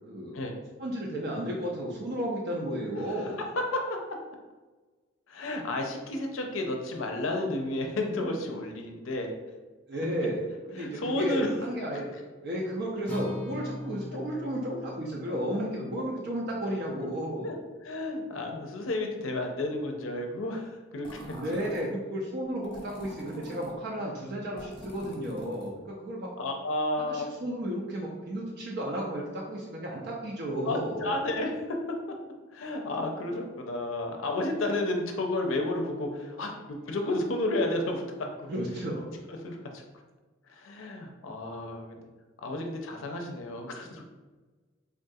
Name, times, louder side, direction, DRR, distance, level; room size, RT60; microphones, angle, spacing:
voice 1, 0.1-0.4 0.8-3.4 9.9-17.6 21.3-26.3 27.0-31.1 38.5-39.0, equal, 55° right, -2 dB, 0.5 m, -33 dB
voice 2, 3.6-4.0 5.3-9.3 10.1-10.3 10.8-11.5 16.7-16.8 17.4-17.5 17.8-21.3 26.4-27.3 30.7-31.8 32.5-38.1 38.4-38.5 39.4-39.8 40.5-42.0 42.4-44.0, left 2 dB, 75° left, 3 dB, 0.5 m, -31 dB
Acoustic guitar, 13.1-17.3, left 1 dB, 10° left, 0.4 m, -41 dB
sound 1, 21.0-21.9 22.6-23.7 24.6-25.8, equal, 25° left, 0.8 m, -44 dB
3.6 x 2.3 x 2.6 m, 1.3 s
head